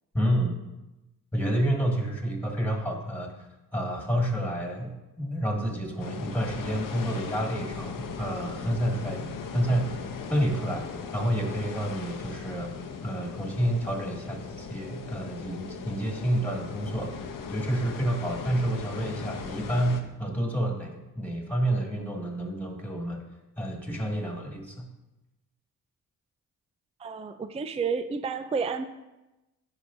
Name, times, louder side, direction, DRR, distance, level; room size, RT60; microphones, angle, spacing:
voice 1, 0.1-0.5 1.3-3.4 3.7-10.0 10.3-12.7 13.0-17.2 17.5-23.2 23.6-24.9, right 1 dB, 5° left, 1 dB, 2.0 m, -29 dB
sound 1, 6.0-20.0, left 5 dB, 55° left, 0.8 m, -38 dB
voice 2, 27.0-28.9, right 5 dB, 15° right, 9 dB, 0.4 m, -30 dB
10.0 x 5.3 x 2.6 m, 1.0 s
supercardioid pair, 45°, 39 cm